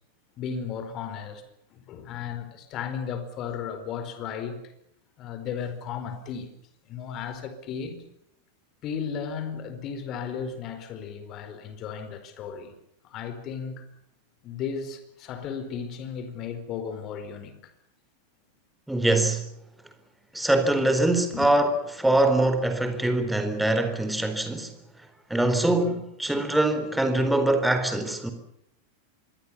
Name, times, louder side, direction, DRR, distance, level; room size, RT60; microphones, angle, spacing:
voice 1, 0.4-1.4 1.7-4.7 5.2-6.6 6.9-8.0 8.8-12.7 13.0-13.9 14.4-17.7 21.3-21.5, left 7 dB, 35° left, 4.7 m, -35 dB
voice 2, 18.9-19.4 20.3-24.7 25.3-28.3, right 1 dB, 5° right, 4.2 m, -23 dB
26.0 x 22.5 x 7.2 m
figure-of-eight pair, 90°, 0 cm